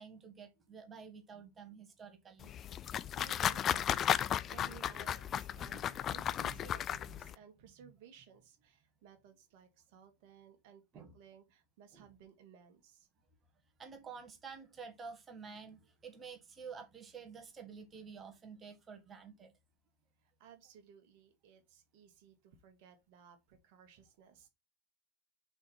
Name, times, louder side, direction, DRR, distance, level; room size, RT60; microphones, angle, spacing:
voice 1, 0.0-2.5 5.5-6.6 7.1-7.2 7.8-7.9 10.9-11.1 11.9-12.1 13.8-19.5, right 5 dB, 20° right, 1.5 m, -50 dB
sound 1, 2.4-7.3, left 10 dB, 30° left, 0.3 m, -35 dB
voice 2, 3.1-13.1 20.2-24.5, right 7 dB, 45° right, 1.7 m, -59 dB
5.4 x 4.3 x 5.4 m
figure-of-eight pair, 90°, 0 cm